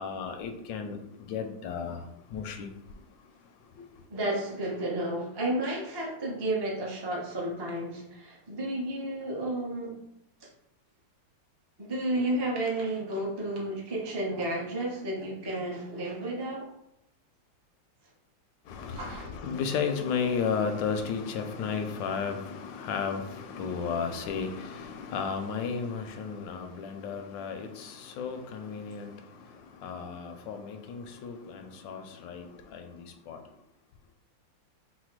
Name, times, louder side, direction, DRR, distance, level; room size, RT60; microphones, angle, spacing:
voice 1, 0.0-3.0 3.7-3.8 18.7-33.4, left 6 dB, 80° left, 1.2 m, -34 dB
voice 2, 4.1-9.9 10.4-10.5 11.8-16.7 18.9-19.3, right 1 dB, 30° right, 0.4 m, -32 dB
4.1 x 2.2 x 4.5 m
omnidirectional pair, 2.0 m